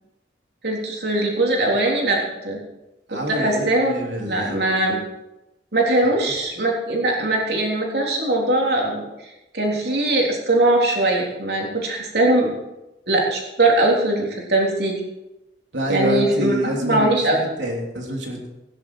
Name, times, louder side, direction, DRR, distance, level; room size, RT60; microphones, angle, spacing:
voice 1, 0.6-2.2 2.4-2.6 3.1-5.0 5.7-9.0 9.5-12.5 13.1-15.0 15.9-16.6 16.8-17.4, right 2 dB, 60° right, -1 dB, 3.6 m, -21 dB
voice 2, 3.1-4.6 6.0-6.1 15.7-17.1 17.4-18.5, right 1 dB, 85° right, 0 dB, 3.2 m, -27 dB
16.0 x 11.0 x 4.7 m, 0.93 s
head